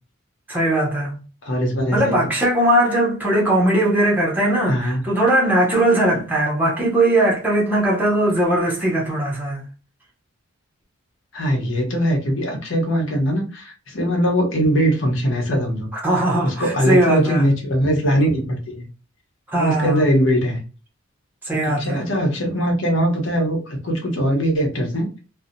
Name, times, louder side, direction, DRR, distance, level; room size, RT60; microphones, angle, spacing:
voice 1, 0.5-1.2 1.9-9.6 16.0-17.4 19.5-20.0 21.4-22.0, right 1 dB, 10° right, 0.7 m, -19 dB
voice 2, 1.4-2.2 4.7-5.0 11.3-15.9 16.4-18.9 19.5-20.6 21.6-25.1, equal, 65° left, 0.9 m, -21 dB
2.7 x 2.1 x 2.6 m
head